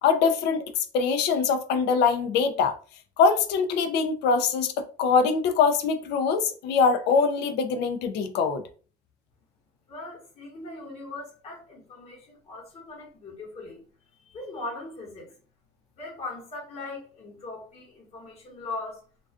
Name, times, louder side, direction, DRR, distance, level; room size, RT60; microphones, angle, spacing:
voice 1, 0.0-2.7 3.2-8.6, left 5 dB, 80° left, 0.4 m, -23 dB
voice 2, 9.9-13.8 14.1-15.4 16.0-19.0, left 2 dB, 40° left, 1.1 m, -39 dB
2.4 x 2.3 x 2.3 m
cardioid pair, 110°, 17 cm